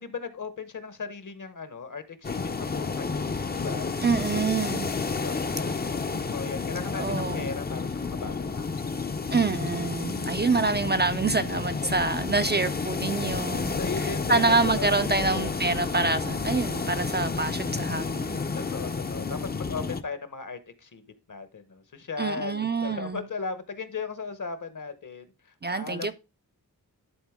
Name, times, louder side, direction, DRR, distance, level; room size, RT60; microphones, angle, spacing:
voice 1, 0.0-3.9 5.2-8.8 10.2-10.3 11.5-11.9 13.8-15.5 18.7-21.0 21.3-26.1, left 5 dB, 55° left, 1.0 m, -37 dB
sound 1, 2.2-20.0, left 4 dB, 25° left, 0.5 m, -31 dB
voice 2, 4.0-4.9 7.0-7.5 9.3-13.8 14.3-18.4 22.2-23.2 25.6-26.1, right 3 dB, 30° right, 0.4 m, -26 dB
11.0 x 4.0 x 3.5 m
wide cardioid pair, 90°, 37 cm